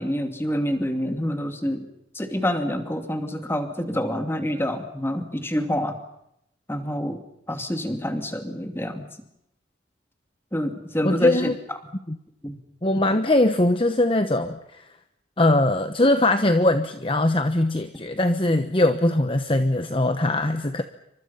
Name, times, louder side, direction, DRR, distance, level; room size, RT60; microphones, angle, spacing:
voice 1, 0.0-1.9 2.1-6.0 6.7-7.2 7.5-9.1 10.5-11.5 12.4-12.6, equal, 15° left, 6 dB, 2.6 m, -27 dB
voice 2, 11.0-11.6 12.1-12.2 12.8-14.8 15.4-20.8, left 1 dB, 30° left, 8 dB, 1.1 m, -21 dB
28.5 x 25.5 x 5.7 m, 0.79 s
head